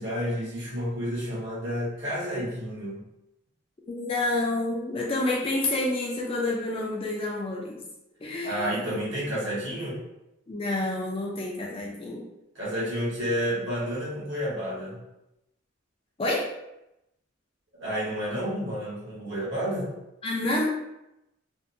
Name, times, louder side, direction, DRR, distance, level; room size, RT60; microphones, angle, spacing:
voice 1, 0.0-3.0 8.4-10.0 12.5-15.0 17.7-19.9, equal, 60° right, -7 dB, 1.0 m, -30 dB
voice 2, 3.9-7.8 8.2-8.8 10.5-12.2 16.2-16.5 20.2-20.6, left 2 dB, 25° left, -3 dB, 0.4 m, -28 dB
2.6 x 2.1 x 2.6 m, 0.88 s
head